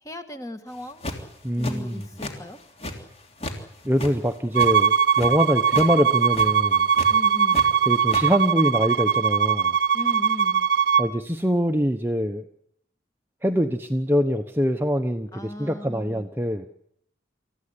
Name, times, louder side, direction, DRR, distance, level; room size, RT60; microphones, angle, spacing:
voice 1, 0.0-1.0 1.6-2.6 7.1-7.7 9.9-10.7 15.3-16.3, left 1 dB, 15° left, 7 dB, 2.0 m, -37 dB
sound 1, 0.8-1.3 1.6-2.3 2.6-3.6 3.9-5.3 5.7-5.9 6.2-6.5 6.9-7.7 7.9-8.2, left 1 dB, 35° left, 3.3 m, -33 dB
voice 2, 1.4-2.1 3.8-6.9 7.9-9.8 11.0-12.4 13.4-16.7, equal, 10° right, 6 dB, 1.0 m, -24 dB
Bowed string instrument, 4.5-11.1, right 7 dB, 60° right, 1.0 m, -21 dB
27.5 x 15.0 x 9.9 m, 0.72 s
head